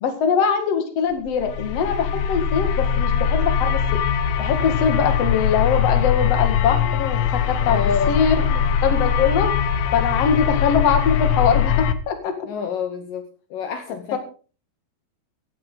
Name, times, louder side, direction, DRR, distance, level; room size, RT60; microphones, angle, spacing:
voice 1, 0.0-3.8 4.4-7.8 8.1-9.5 9.9-12.3 14.1-14.2, left 6 dB, 45° left, 6 dB, 2.7 m, -22 dB
sound 1, 1.3-11.9, left 8 dB, 85° left, 3.0 m, -21 dB
voice 2, 7.7-8.2 12.5-14.2, left 6 dB, 70° left, 6 dB, 2.7 m, -27 dB
16.0 x 13.0 x 3.9 m, 0.38 s
omnidirectional pair, 4.5 m